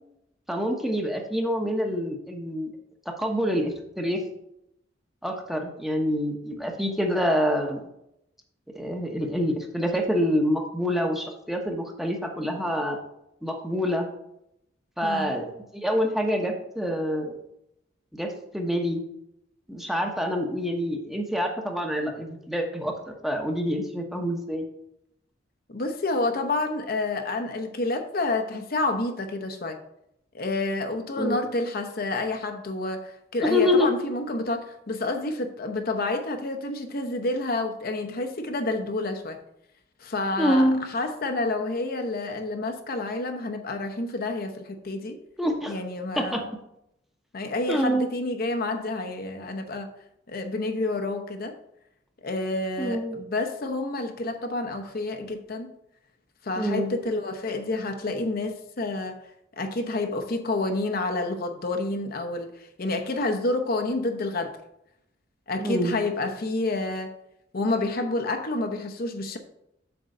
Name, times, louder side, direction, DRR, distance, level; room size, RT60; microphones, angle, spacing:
voice 1, 0.5-2.7 3.1-4.2 5.2-7.8 8.7-13.0 13.4-14.1 15.0-17.4 18.2-19.0 19.7-24.7 31.2-31.4 33.5-33.9 40.4-40.9 45.4-45.8 46.2-46.4 47.7-48.1 52.8-53.2 56.6-57.0 65.6-66.0, equal, ahead, 2 dB, 1.0 m, -26 dB
voice 2, 15.0-15.3 25.7-29.8 30.3-39.4 40.0-45.2 45.7-46.4 47.3-49.9 50.3-51.6 52.2-55.7 56.4-59.2 59.6-62.5 62.8-64.6 65.5-67.1 67.5-69.4, left 2 dB, 50° left, 6 dB, 0.8 m, -29 dB
7.9 x 3.8 x 6.6 m, 0.80 s
head